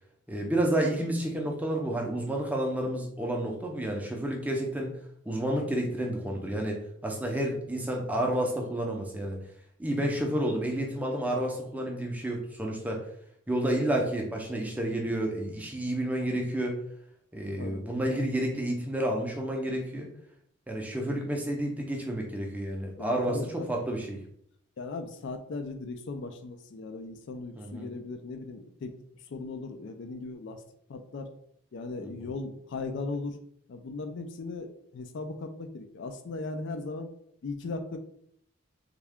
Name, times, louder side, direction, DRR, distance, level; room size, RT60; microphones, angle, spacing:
voice 1, 0.3-4.9 5.3-9.4 9.8-13.0 13.5-16.8 17.3-20.1 20.7-24.2 27.6-27.9 32.0-32.3, right 1 dB, 5° right, 0 dB, 0.5 m, -30 dB
voice 2, 23.0-23.7 24.8-28.9 29.3-30.6 30.9-31.3 31.7-33.4 33.7-37.1 37.4-38.0, left 3 dB, 55° left, 6 dB, 0.3 m, -38 dB
3.5 x 2.2 x 3.5 m, 0.69 s
head